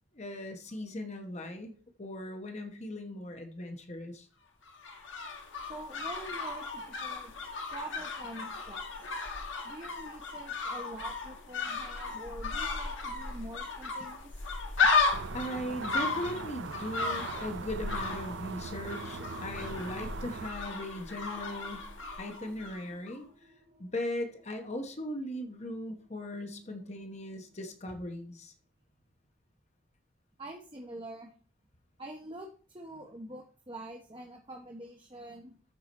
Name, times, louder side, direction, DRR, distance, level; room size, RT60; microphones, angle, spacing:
voice 1, 0.1-1.7 2.0-4.3 15.3-21.9 22.2-23.3 23.8-28.5, left 1 dB, 35° left, 5 dB, 1.0 m, -38 dB
sound 1, 4.6-22.8 23.1-23.2, left 4 dB, 75° left, 1.6 m, -35 dB
voice 2, 5.6-7.3 7.7-9.1 9.6-14.4 14.8-14.9 30.4-31.3 32.0-35.5, right 1 dB, 25° right, 1 dB, 0.9 m, -45 dB
sound 2, 15.1-20.5, right 5 dB, 65° right, 0.5 m, -41 dB
sound 3, 16.7-27.8, left 1 dB, 50° right, 1.1 m, -54 dB
13.5 x 4.8 x 4.2 m, 0.43 s
head